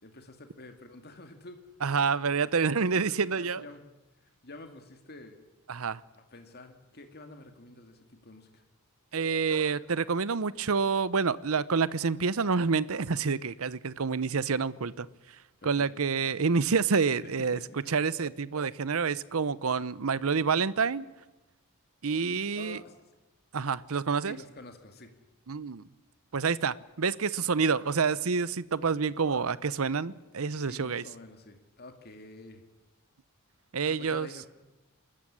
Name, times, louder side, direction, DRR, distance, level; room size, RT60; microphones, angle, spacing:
voice 1, 0.0-1.6 2.9-3.9 4.2-5.3 6.1-8.6 15.6-15.9 17.5-17.6 22.5-22.9 24.3-25.1 30.6-32.6 33.8-34.5, left 2 dB, 45° left, 2.3 m, -48 dB
voice 2, 1.8-3.7 5.7-6.0 9.1-17.6 17.9-21.1 22.0-22.8 23.5-24.4 25.5-25.9 26.3-31.0 33.7-34.3, right 5 dB, 70° right, 0.7 m, -28 dB
26.0 x 14.0 x 10.0 m
head